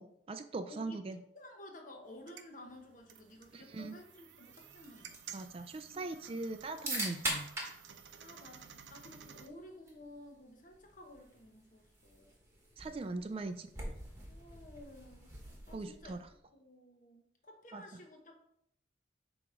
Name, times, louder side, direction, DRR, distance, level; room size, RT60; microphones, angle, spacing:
voice 1, 0.0-1.2 3.5-4.0 5.3-7.5 12.8-13.9 15.7-16.2 17.7-17.8, right 3 dB, 30° right, 10 dB, 0.3 m, -41 dB
voice 2, 0.7-5.2 5.9-6.2 8.2-12.3 14.3-15.4 15.7-18.5, left 1 dB, 45° left, 3 dB, 1.0 m, -54 dB
sound 1, 2.1-9.5, right 8 dB, 85° right, 0.6 m, -54 dB
sound 2, 4.4-16.4, right 1 dB, 15° right, 1.4 m, -45 dB
7.6 x 3.0 x 4.9 m, 0.74 s
head